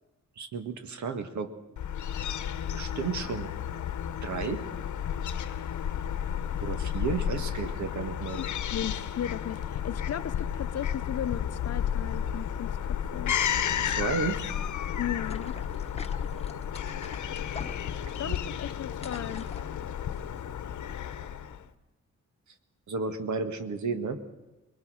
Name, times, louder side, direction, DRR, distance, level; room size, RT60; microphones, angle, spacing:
voice 1, 0.4-1.5 2.7-3.5 4.2-4.6 6.6-8.4 13.8-14.4 18.1-18.4 22.9-24.2, right 4 dB, 75° right, 8 dB, 1.8 m, -32 dB
Fowl / Gull seagull, 1.8-21.6, left 9 dB, 85° left, 1.0 m, -32 dB
voice 2, 8.3-13.3 15.0-15.6 18.2-19.5, left 9 dB, 55° left, 13 dB, 0.7 m, -36 dB
sound 1, 15.2-20.5, left 4 dB, 20° left, 1.1 m, -46 dB
23.5 x 21.0 x 6.4 m, 1.0 s
wide cardioid pair, 155°, 29 cm